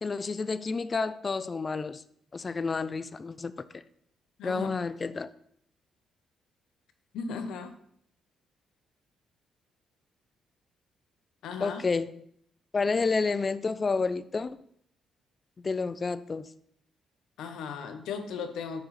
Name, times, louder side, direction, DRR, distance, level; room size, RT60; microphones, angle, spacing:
voice 1, 0.0-2.0 2.3-3.8 4.4-5.3 11.6-12.2 12.7-14.6 15.6-16.5, left 4 dB, 35° left, 0.4 m, -30 dB
voice 2, 7.1-7.8 11.4-11.8 17.4-18.8, left 5 dB, 80° left, 0.9 m, -36 dB
12.5 x 4.7 x 3.3 m
cardioid pair, 90°, 0 cm